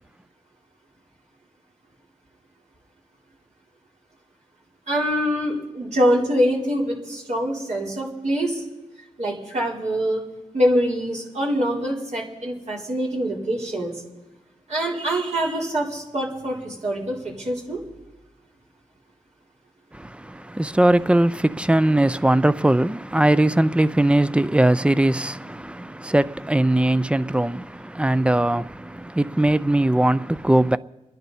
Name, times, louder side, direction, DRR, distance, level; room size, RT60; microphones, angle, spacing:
voice 1, 4.9-8.6 9.2-10.2 10.5-14.0 14.7-17.8, equal, 65° right, 4.3 m, -24 dB
voice 2, 19.9-30.8, right 1 dB, 10° right, 0.5 m, -20 dB
28.5 x 10.5 x 4.3 m
cardioid pair, 55°, 13 cm